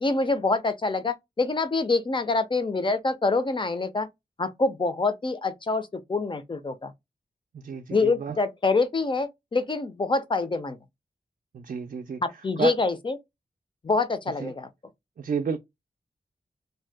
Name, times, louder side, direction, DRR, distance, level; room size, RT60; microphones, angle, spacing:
voice 1, 0.0-4.1 4.4-6.9 7.9-10.8 12.2-13.2 13.8-14.7, left 3 dB, 35° left, 0.5 m, -26 dB
voice 2, 7.5-8.4 11.5-12.2 12.6-12.7 14.4-14.5 15.2-15.6, right 6 dB, 60° right, 0.4 m, -31 dB
2.6 x 2.2 x 3.3 m
wide cardioid pair, 110°, 15 cm